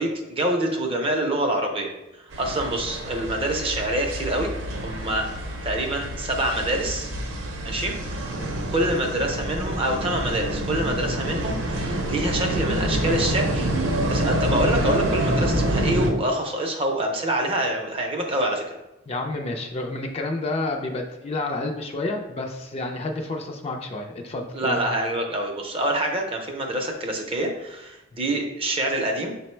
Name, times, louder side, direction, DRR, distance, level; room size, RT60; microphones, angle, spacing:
voice 1, 0.0-1.9 2.4-4.5 4.8-7.1 7.6-8.3 8.7-13.7 14.1-18.6 24.5-29.4, right 1 dB, 30° right, 2 dB, 0.5 m, -26 dB
sound 1, 2.3-16.1, right 1 dB, 90° right, 0.6 m, -27 dB
voice 2, 19.1-24.8 28.3-28.4, left 2 dB, 30° left, 3 dB, 0.4 m, -30 dB
4.8 x 2.0 x 4.3 m, 0.96 s
head